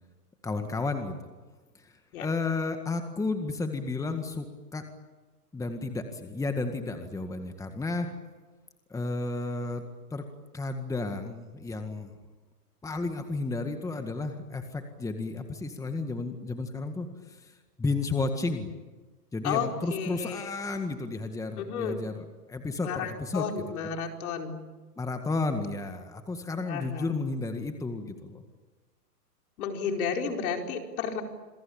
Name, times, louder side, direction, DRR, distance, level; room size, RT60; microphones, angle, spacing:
voice 1, 0.4-1.1 1.8-1.9 2.2-4.5 4.7-4.8 5.5-8.1 8.9-9.8 10.1-10.2 10.5-12.1 12.8-18.7 19.3-23.7 25.0-28.4, left 3 dB, 5° left, 6 dB, 1.9 m, -32 dB
voice 2, 19.4-20.5 21.6-22.0 22.8-24.6 26.7-27.1 29.6-31.2, left 6 dB, 60° left, 3 dB, 4.8 m, -32 dB
27.5 x 22.5 x 8.8 m, 1.3 s
hypercardioid pair, 130°, 48 cm